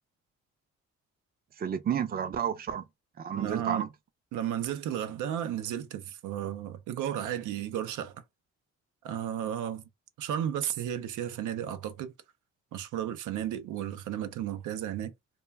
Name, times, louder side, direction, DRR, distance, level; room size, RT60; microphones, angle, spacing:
voice 1, 1.6-2.8 3.2-3.9, right 8 dB, 30° right, 0.5 m, -31 dB
voice 2, 3.3-3.8 4.3-8.2 9.0-9.8 10.2-12.1 12.7-15.1, right 10 dB, 80° right, 0.5 m, -33 dB
2.2 x 2.2 x 3.3 m
cardioid pair, 90°, 30 cm